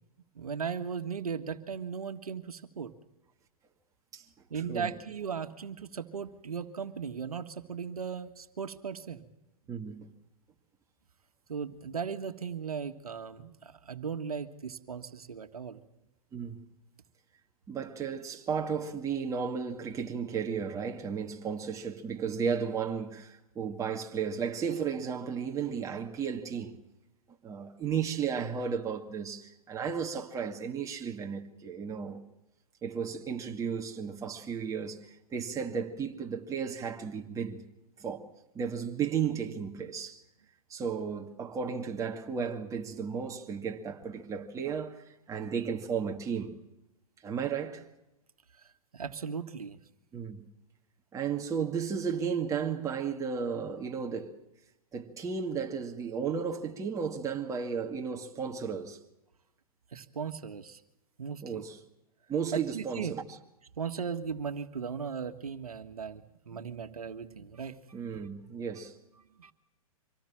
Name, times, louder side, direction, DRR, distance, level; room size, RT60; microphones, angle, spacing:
voice 1, 0.3-2.9 4.5-9.3 11.5-15.8 48.6-49.8 59.9-60.8 61.2-61.6 62.5-63.2 63.8-68.0 69.4-69.5, right 6 dB, 80° right, 1.6 m, -37 dB
voice 2, 9.7-10.1 16.3-16.6 17.7-26.8 27.4-32.2 32.8-37.6 38.0-40.2 40.7-46.6 47.2-47.9 50.1-50.4 51.1-54.3 54.9-59.0 61.4-61.8 62.3-63.2 67.9-68.9, right 6 dB, 15° right, 2.2 m, -34 dB
25.5 x 18.0 x 7.5 m
hypercardioid pair, 120°, 19 cm